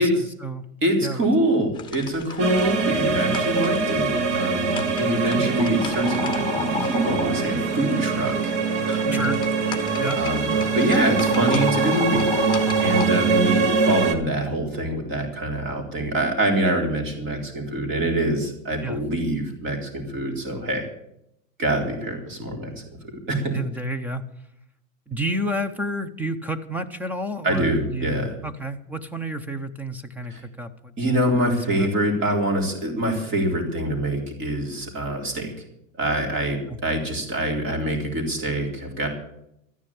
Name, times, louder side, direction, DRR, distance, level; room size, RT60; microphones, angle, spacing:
voice 1, 0.0-0.6 1.0-1.3 9.1-9.4 10.0-10.2 18.8-19.0 23.5-24.2 25.1-30.9 31.4-31.9 36.7-36.8, right 1 dB, 5° right, 11 dB, 0.6 m, -30 dB
voice 2, 0.8-8.5 8.9-9.1 10.2-12.3 12.8-20.9 21.6-22.8 23.3-23.6 27.4-28.4 30.3-30.4 31.0-35.5 36.0-39.1, right 1 dB, 30° right, 2 dB, 3.8 m, -25 dB
sound 1, 1.7-13.1, left 8 dB, 10° left, 1.4 m, -34 dB
sound 2, 2.4-14.1, right 5 dB, 55° right, 2.0 m, -23 dB
13.5 x 9.9 x 8.5 m, 0.79 s
supercardioid pair, 150°, 40 cm